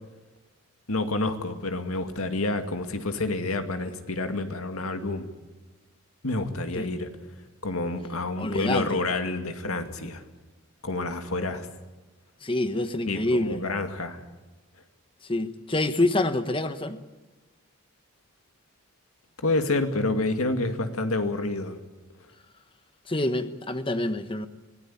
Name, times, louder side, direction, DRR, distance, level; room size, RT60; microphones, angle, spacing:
voice 1, 0.9-5.3 6.2-7.1 7.6-10.2 10.8-11.7 13.1-14.2 19.4-21.8, left 2 dB, 90° left, 7 dB, 2.2 m, -28 dB
voice 2, 8.4-9.0 12.4-13.6 15.2-17.0 23.1-24.5, left 1 dB, 25° left, 10 dB, 1.2 m, -27 dB
25.0 x 17.5 x 8.7 m, 1.2 s
head